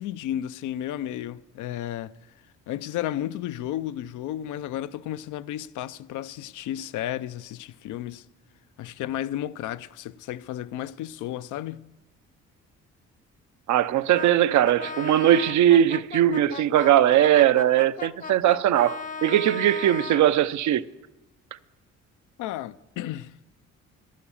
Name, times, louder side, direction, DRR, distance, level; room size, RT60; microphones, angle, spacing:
voice 1, 0.0-2.1 2.7-8.2 8.8-11.8 22.4-23.3, left 12 dB, 85° left, 0.5 m, -33 dB
voice 2, 13.7-20.8, right 11 dB, 70° right, 0.6 m, -20 dB
Brass instrument, 14.1-20.3, left 5 dB, 25° left, 0.6 m, -37 dB
11.5 x 11.0 x 7.1 m
cardioid pair, 90°, 30 cm